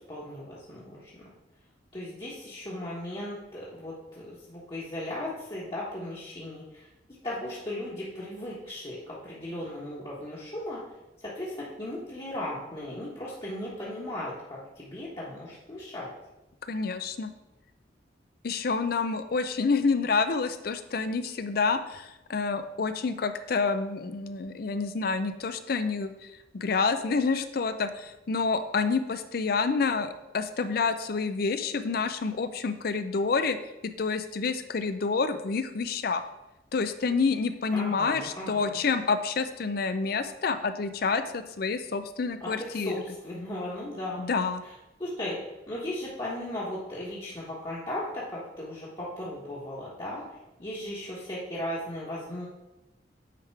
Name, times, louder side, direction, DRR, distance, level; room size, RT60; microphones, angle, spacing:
voice 1, 0.1-1.1 1.9-6.9 7.2-10.8 11.2-16.1 37.7-38.8 42.4-44.3 44.6-44.7 45.0-45.4 45.7-50.2 50.6-52.5, left 1 dB, 30° left, -8 dB, 1.3 m, -36 dB
voice 2, 16.7-17.3 18.4-26.1 26.5-33.6 33.8-36.2 36.7-42.9 44.2-44.6, left 4 dB, 50° left, 10 dB, 0.5 m, -28 dB
9.2 x 3.6 x 4.6 m, 0.96 s
head